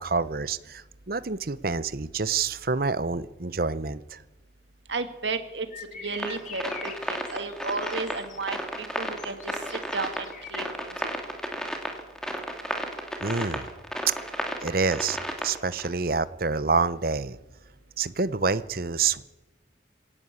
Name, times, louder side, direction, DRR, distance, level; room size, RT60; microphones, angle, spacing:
voice 1, 0.0-4.2 13.2-13.7 14.1-14.2 14.6-15.2 15.4-17.4 18.0-19.2, right 4 dB, 50° right, 15 dB, 0.8 m, -27 dB
voice 2, 4.9-5.7 5.9-11.0, right 3 dB, 75° right, 8 dB, 2.2 m, -33 dB
sound 1, 5.7-10.6, left 6 dB, 40° left, 2.0 m, -44 dB
sound 2, 6.1-15.9, equal, 5° left, 2.4 m, -33 dB
24.0 x 17.5 x 8.5 m, 1.1 s
head